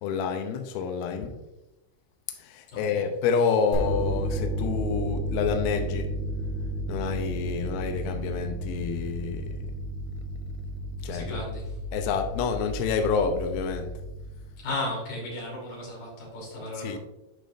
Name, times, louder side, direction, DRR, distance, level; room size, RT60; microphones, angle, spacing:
voice 1, 0.0-1.4 2.3-6.1 6.9-9.6 11.0-11.4 11.9-13.9 16.8-17.0, left 6 dB, 90° left, 2.1 m, -28 dB
voice 2, 2.7-3.1 11.1-11.7 14.6-17.0, left 1 dB, 50° left, 4.1 m, -35 dB
sound 1, 3.7-14.7, right 1 dB, 70° left, 3.5 m, -32 dB
11.5 x 5.1 x 2.5 m
omnidirectional pair, 5.0 m